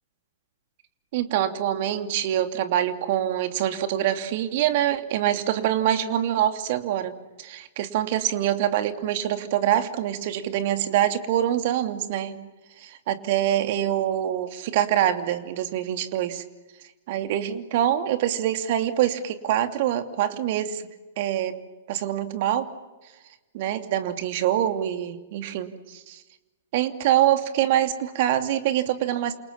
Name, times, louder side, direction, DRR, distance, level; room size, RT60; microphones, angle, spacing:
voice 1, 1.1-7.1 7.4-12.4 12.8-16.4 17.1-20.8 21.2-21.6 21.9-22.7 23.5-26.2 26.7-29.3, right 11 dB, 50° right, 8 dB, 2.8 m, -25 dB
29.0 x 28.0 x 7.2 m, 1.1 s
figure-of-eight pair, 110°, 0 cm